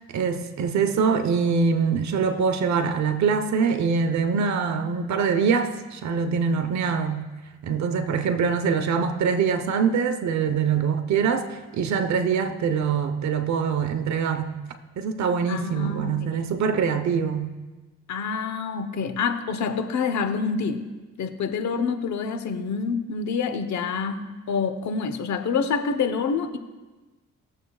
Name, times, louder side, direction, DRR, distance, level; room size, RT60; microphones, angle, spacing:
voice 1, 0.1-7.2 7.6-14.6 15.0-17.5, right 6 dB, 65° right, 9 dB, 1.0 m, -24 dB
voice 2, 15.5-16.3 18.1-20.9 21.2-26.6, left 5 dB, 65° left, 9 dB, 1.0 m, -27 dB
19.0 x 7.5 x 2.4 m, 1.2 s
cardioid pair, 90°, 30 cm